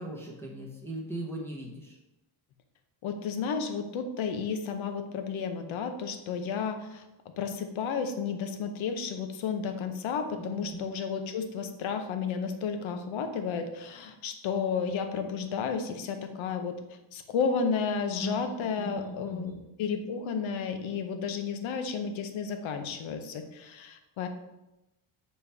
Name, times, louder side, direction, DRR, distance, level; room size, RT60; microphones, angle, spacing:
voice 1, 0.0-2.0 10.4-10.8 18.2-19.6, equal, 5° left, -4 dB, 0.9 m, -39 dB
voice 2, 3.0-7.0 7.4-16.8 17.1-19.5 19.8-24.3, left 6 dB, 70° left, 7 dB, 0.9 m, -32 dB
6.9 x 4.4 x 3.4 m, 0.94 s
cardioid pair, 145°, 50 cm